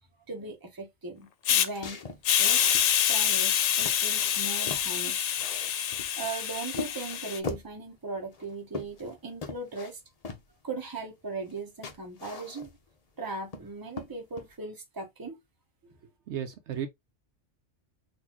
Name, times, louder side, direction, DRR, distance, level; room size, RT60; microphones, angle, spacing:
voice 1, 0.3-2.0 2.4-5.2 6.2-10.0 10.6-12.7 13.2-15.4, right 3 dB, 20° right, 0.9 m, -38 dB
Hiss, 1.5-1.7 2.2-7.4, left 9 dB, 75° left, 0.9 m, -26 dB
sound 1, 1.7-2.9 3.4-3.5 3.8-4.9 5.3-6.4 6.7-7.7 8.3-9.2 9.4-9.9 10.2-10.4 11.5-11.6 11.8-12.9 13.3-13.7 14.0-14.5, left 4 dB, 40° left, 0.6 m, -40 dB
voice 2, 16.3-16.9, right 9 dB, 70° right, 0.9 m, -34 dB
4.0 x 2.6 x 2.9 m
omnidirectional pair, 1.2 m